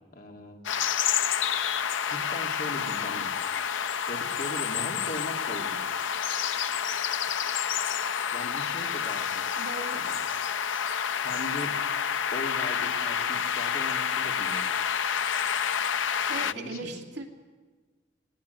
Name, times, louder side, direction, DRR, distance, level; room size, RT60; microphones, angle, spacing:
voice 1, 0.1-0.6 2.1-3.3 4.1-5.9 8.3-9.5 9.9-10.2 11.2-11.8 12.3-14.6 16.3-16.9, left 1 dB, 50° left, 2 dB, 2.7 m, -39 dB
sound 1, 0.7-16.5, left 8 dB, 90° left, 0.6 m, -29 dB
voice 2, 9.6-10.1 16.3-17.3, right 2 dB, 65° right, 3 dB, 2.6 m, -38 dB
19.0 x 19.0 x 9.3 m, 1.4 s
head